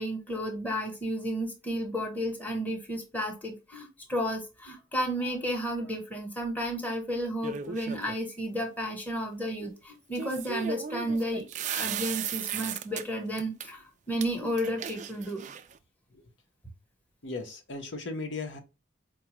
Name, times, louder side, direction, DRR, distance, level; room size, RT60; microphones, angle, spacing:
voice 1, 0.0-15.5, equal, 10° left, 0.9 m, -32 dB
sound 1, 7.4-8.2 10.2-13.0 13.4-13.7 14.2-14.3 14.6-15.8, right 8 dB, 40° right, 0.3 m, -36 dB
voice 2, 17.2-18.6, left 3 dB, 70° left, 0.8 m, -36 dB
4.6 x 2.2 x 2.9 m
head